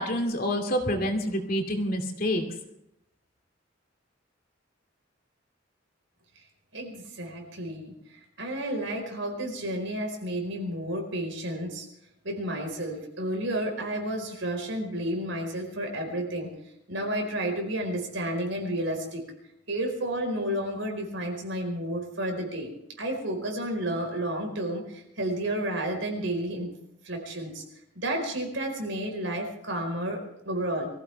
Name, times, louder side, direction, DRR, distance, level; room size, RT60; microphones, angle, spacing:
voice 1, 0.0-2.4, equal, 50° left, 3 dB, 2.5 m, -27 dB
voice 2, 6.7-11.9 12.2-16.5 16.9-19.2 19.7-22.7 23.0-26.7 27.0-27.6 27.9-30.9, right 1 dB, 75° right, 3 dB, 4.7 m, -31 dB
23.5 x 15.5 x 3.5 m, 0.80 s
head